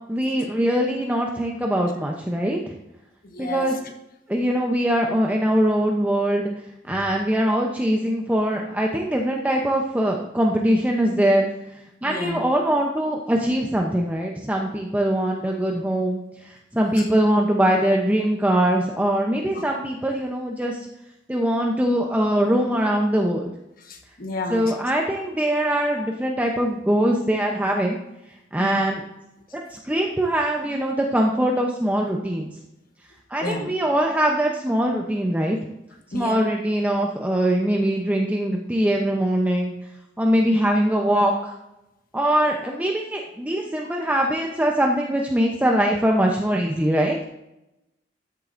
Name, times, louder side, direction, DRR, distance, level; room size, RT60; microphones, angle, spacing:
voice 1, 0.1-2.8 3.4-3.8 4.3-6.5 6.8-11.5 12.0-20.8 21.3-23.5 24.5-28.0 28.5-29.1 29.5-32.5 33.3-35.6 36.1-39.7 40.2-41.5 42.1-47.2, right 1 dB, 10° right, 0.6 m, -22 dB
voice 2, 3.2-3.7 12.1-12.4 19.6-19.7 23.9-24.7 28.6-28.9 33.4-33.7 36.1-36.5, left 2 dB, 50° left, 1.3 m, -31 dB
13.0 x 7.5 x 2.6 m
head